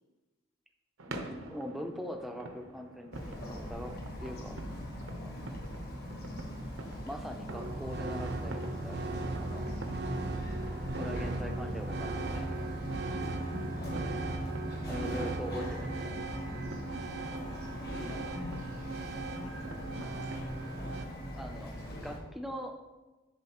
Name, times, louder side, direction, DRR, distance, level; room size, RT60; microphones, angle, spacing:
sound 1, 1.0-20.9, right 2 dB, 80° right, 0.7 m, -48 dB
voice 1, 1.1-4.6 5.0-5.5 7.0-9.7 11.0-12.6 14.9-15.8 16.2-16.3 21.4-21.7 22.0-22.8, equal, ahead, 4 dB, 0.4 m, -42 dB
Bird vocalization bird call bird song, 3.1-22.2, equal, 50° left, 1.2 m, -41 dB
voice 2, 4.2-4.8 5.1-5.5 10.0-10.3 13.1-13.4 17.1-18.1 19.3-20.1, left 2 dB, 85° left, 8 dB, 0.5 m, -51 dB
sound 2, 7.5-21.1, right 2 dB, 50° right, 0.5 m, -38 dB
11.0 x 3.9 x 2.9 m, 1.2 s
head